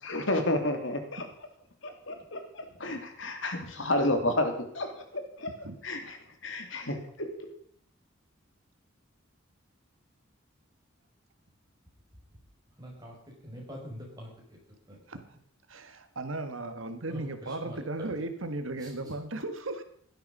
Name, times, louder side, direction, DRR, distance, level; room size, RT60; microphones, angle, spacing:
voice 1, 0.0-1.3 1.8-5.5 5.8-7.5, left 1 dB, 70° left, 5 dB, 2.9 m, -31 dB
voice 2, 12.8-13.1 13.4-14.3 14.9-15.0 17.1-18.1 18.8-18.9, equal, 20° right, -2 dB, 6.3 m, -44 dB
voice 3, 15.7-19.8, right 2 dB, 80° right, 8 dB, 1.7 m, -36 dB
16.5 x 12.0 x 5.4 m, 0.63 s
head